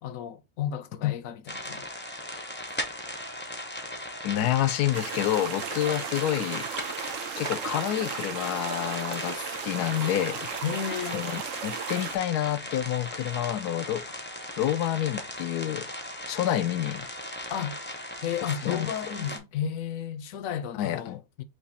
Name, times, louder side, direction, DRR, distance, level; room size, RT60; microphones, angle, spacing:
voice 1, 0.0-1.9 10.6-11.3 17.5-17.8 18.2-21.4, left 8 dB, 70° left, 0.9 m, -33 dB
sound 1, 1.5-19.4, left 1 dB, 15° left, 0.4 m, -38 dB
voice 2, 4.2-6.7 7.4-10.6 11.1-14.0 14.6-15.8 16.3-17.1 18.6-18.9 20.7-21.2, left 12 dB, 90° left, 1.1 m, -28 dB
sound 2, 4.9-12.2, right 8 dB, 65° right, 0.9 m, -36 dB
4.7 x 2.6 x 4.1 m
omnidirectional pair, 1.6 m